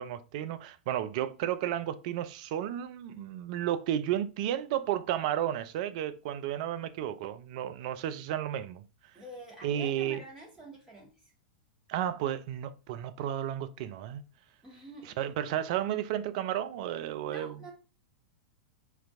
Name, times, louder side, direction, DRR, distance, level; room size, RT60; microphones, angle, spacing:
voice 1, 0.0-8.8 9.6-10.2 11.9-14.2 15.2-17.6, right 11 dB, 50° right, 0.4 m, -32 dB
voice 2, 9.1-11.3 14.6-15.2 17.3-17.7, right 1 dB, 10° right, 1.7 m, -47 dB
4.4 x 2.6 x 2.5 m
figure-of-eight pair, 95°, 5 cm